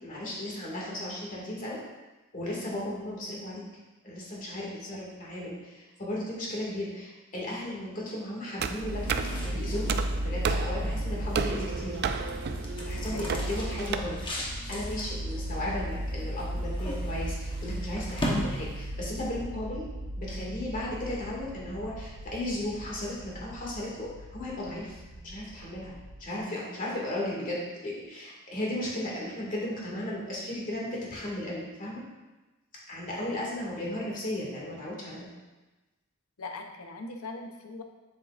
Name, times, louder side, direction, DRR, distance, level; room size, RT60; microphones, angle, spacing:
voice 1, 0.0-1.8 2.3-3.6 4.0-12.0 12.8-14.2 14.7-19.8 20.2-25.9 26.2-32.0 32.9-35.3, left 1 dB, 40° left, -5 dB, 2.1 m, -35 dB
sound 1, 8.6-13.9, right 5 dB, 50° right, 0.4 m, -33 dB
sound 2, 8.8-26.2, equal, 90° right, 0.8 m, -36 dB
sound 3, 8.9-19.2, equal, 25° left, 1.1 m, -39 dB
voice 2, 13.0-13.3 33.3-33.4 36.4-37.8, left 3 dB, 75° left, 4 dB, 0.8 m, -40 dB
7.5 x 7.5 x 2.5 m, 1.1 s
head